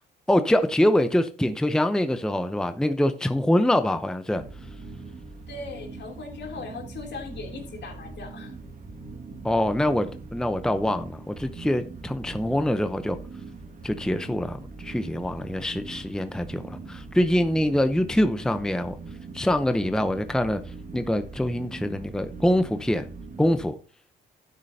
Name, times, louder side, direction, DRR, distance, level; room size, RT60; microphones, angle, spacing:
voice 1, 0.3-4.4 9.4-13.2 13.8-19.0 19.3-20.6 20.9-23.1 23.4-23.7, left 1 dB, 5° left, 0.7 m, -24 dB
sound 1, 4.3-23.7, right 3 dB, 40° right, 2.1 m, -41 dB
voice 2, 5.5-8.6, left 3 dB, 60° left, 3.0 m, -38 dB
12.0 x 9.9 x 2.8 m
cardioid pair, 90°, 20 cm